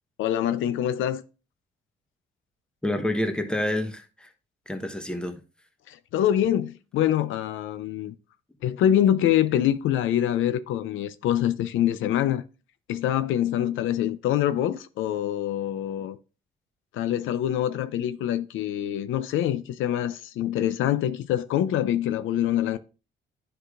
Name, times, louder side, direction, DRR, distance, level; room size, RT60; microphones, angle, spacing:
voice 1, 0.2-1.2 5.9-8.1 8.6-12.4 12.9-16.2 16.9-22.8, left 11 dB, 80° left, 0.5 m, -25 dB
voice 2, 2.8-4.3 4.7-5.4, left 1 dB, 5° left, 1.0 m, -28 dB
10.0 x 4.9 x 2.5 m
cardioid pair, 90°, 20 cm